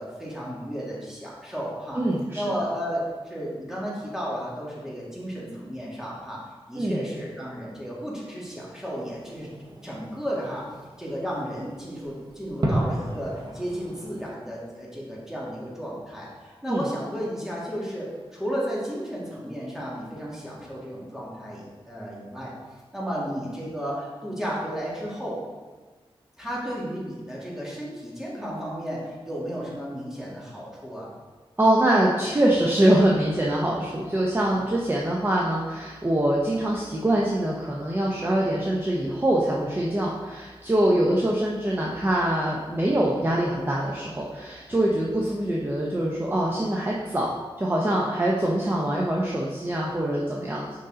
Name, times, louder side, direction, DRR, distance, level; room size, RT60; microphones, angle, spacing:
voice 1, 0.0-2.0 2.3-9.5 9.8-10.7 11.0-22.5 22.9-25.4 26.4-31.1 34.5-34.7, equal, 5° right, -6 dB, 2.1 m, -33 dB
voice 2, 1.9-2.4 6.8-7.0 16.7-16.8 31.6-47.3 47.6-50.8, right 1 dB, 20° right, -3 dB, 0.8 m, -24 dB
Fireworks, 9.0-14.3, right 1 dB, 45° right, 1.1 m, -33 dB
6.7 x 5.4 x 3.8 m, 1.3 s
wide cardioid pair, 105°, 10 cm